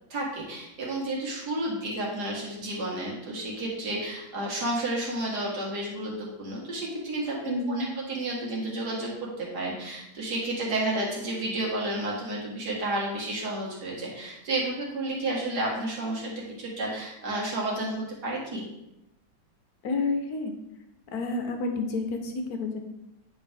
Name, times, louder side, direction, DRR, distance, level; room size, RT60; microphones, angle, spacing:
voice 1, 0.1-18.7, right 1 dB, 55° right, -4 dB, 2.3 m, -31 dB
voice 2, 7.5-7.9 19.8-20.5 21.1-22.8, left 3 dB, 60° left, 5 dB, 1.2 m, -29 dB
9.5 x 4.3 x 3.5 m, 0.87 s
omnidirectional pair, 2.1 m